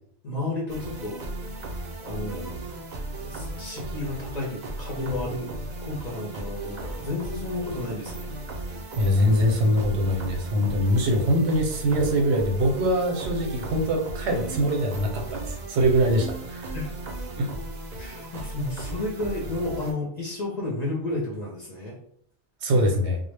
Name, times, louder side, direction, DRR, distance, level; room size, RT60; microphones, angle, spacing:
voice 1, 0.2-1.2 1.6-1.7 2.0-2.6 3.2-5.5 5.8-8.3 16.7-16.9 17.9-22.0, left 2 dB, 45° left, -4 dB, 0.6 m, -32 dB
sound 1, 0.7-19.9, right 2 dB, 50° right, 0.5 m, -36 dB
voice 2, 9.0-16.7 17.4-17.5 22.6-23.2, equal, 80° right, 1 dB, 0.9 m, -23 dB
2.1 x 2.0 x 3.2 m, 0.68 s
omnidirectional pair, 1.2 m